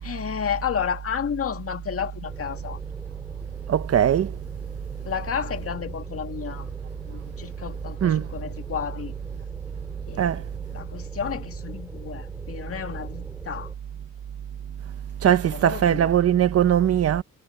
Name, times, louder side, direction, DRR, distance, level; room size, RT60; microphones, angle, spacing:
voice 1, 0.0-2.8 5.0-6.7 7.1-9.1 10.1-10.4 10.7-13.7 15.4-16.1, left 8 dB, 50° left, 2.1 m, -31 dB
sound 1, 2.3-13.7, equal, 5° right, 7.1 m, -42 dB
voice 2, 3.7-4.3 8.0-8.3 10.2-10.4 15.2-17.2, right 10 dB, 55° right, 1.2 m, -20 dB
cardioid pair, 90°, 30 cm